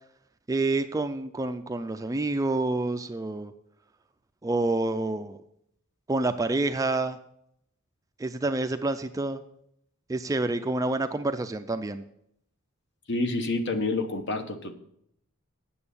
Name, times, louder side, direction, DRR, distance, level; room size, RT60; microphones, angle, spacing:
voice 1, 0.5-3.5 4.4-5.4 6.1-7.2 8.2-9.4 10.1-12.0, right 2 dB, 15° right, 8 dB, 0.4 m, -28 dB
voice 2, 13.1-14.7, left 2 dB, 55° left, 8 dB, 1.0 m, -28 dB
8.8 x 7.0 x 6.9 m, 0.75 s
head